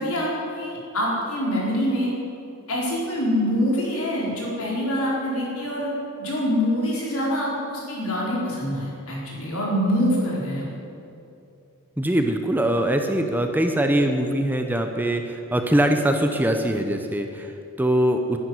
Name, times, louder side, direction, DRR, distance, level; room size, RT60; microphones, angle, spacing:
voice 1, 0.0-2.1 2.7-5.9 6.2-10.7, equal, 70° left, -4 dB, 4.8 m, -25 dB
voice 2, 12.0-18.4, right 1 dB, 10° right, 5 dB, 0.8 m, -22 dB
12.0 x 10.5 x 9.8 m, 2.7 s
head